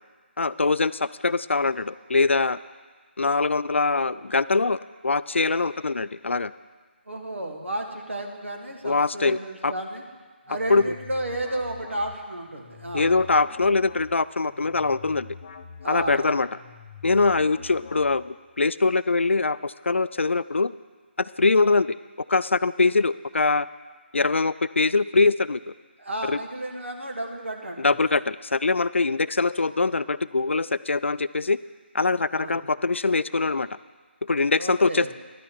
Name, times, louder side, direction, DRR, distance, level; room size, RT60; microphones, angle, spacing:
voice 1, 0.4-2.6 3.2-6.5 8.8-9.7 10.7-10.8 12.9-15.3 15.9-16.5 17.0-20.7 21.2-22.0 22.3-23.7 24.1-25.6 26.2-26.4 27.8-31.6 31.9-33.7 34.2-35.1, left 3 dB, 85° left, 17 dB, 0.4 m, -23 dB
voice 2, 7.1-10.0 10.5-13.2 15.8-16.3 26.0-28.0 32.3-32.7 34.6-35.1, right 1 dB, 85° right, 2 dB, 1.9 m, -32 dB
sound 1, 10.5-18.5, left 5 dB, 40° left, 0.6 m, -45 dB
11.5 x 5.8 x 8.0 m, 1.5 s
figure-of-eight pair, 150°, 6 cm